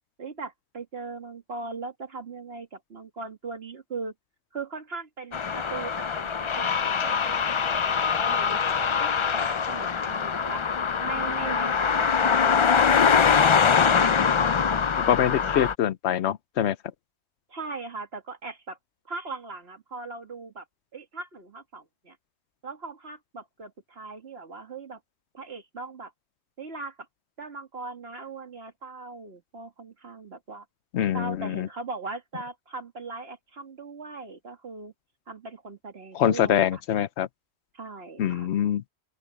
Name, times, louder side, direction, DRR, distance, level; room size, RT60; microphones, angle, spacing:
voice 1, 0.2-4.1 4.5-10.6 11.0-13.2 17.5-18.8 19.1-20.7 20.9-22.2 22.6-25.0 25.3-26.1 26.6-27.0 27.4-30.7 31.1-34.9 35.3-36.8 37.7-38.5, right 3 dB, 65° right, 2.2 m, -39 dB
sound 1, 5.3-15.8, left 6 dB, 40° left, 0.4 m, -23 dB
voice 2, 15.1-16.8 30.9-31.7 36.1-37.3 38.2-38.8, left 10 dB, 85° left, 1.0 m, -24 dB
open air
omnidirectional pair, 1.1 m